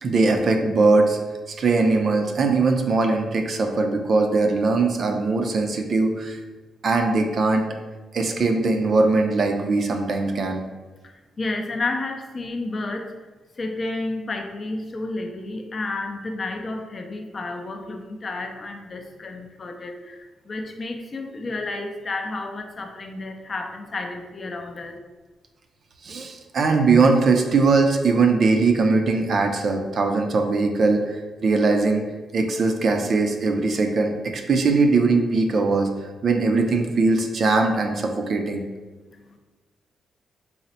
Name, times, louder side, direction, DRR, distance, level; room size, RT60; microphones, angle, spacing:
voice 1, 0.0-1.2 1.6-6.4 6.8-7.7 8.1-10.6 26.0-32.1 32.3-35.9 36.2-38.6, right 3 dB, 55° right, 4 dB, 0.4 m, -20 dB
voice 2, 11.0-13.1 13.6-25.0 39.1-39.4, left 2 dB, 35° left, 4 dB, 0.4 m, -31 dB
4.1 x 2.0 x 4.0 m, 1.2 s
cardioid pair, 105°, 0 cm